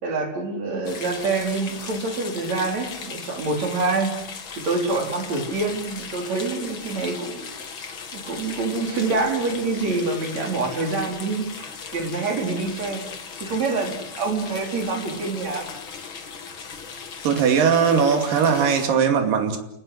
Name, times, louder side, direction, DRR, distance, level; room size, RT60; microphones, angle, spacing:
voice 1, 0.0-4.2 4.6-7.5 8.1-13.0 13.4-15.6, right 3 dB, 50° right, 2 dB, 5.6 m, -26 dB
sound 1, 0.8-18.9, left 5 dB, 40° left, 2.3 m, -37 dB
voice 2, 17.2-19.6, right 6 dB, 70° right, 5 dB, 4.1 m, -19 dB
29.5 x 19.5 x 8.2 m, 0.81 s
omnidirectional pair, 4.1 m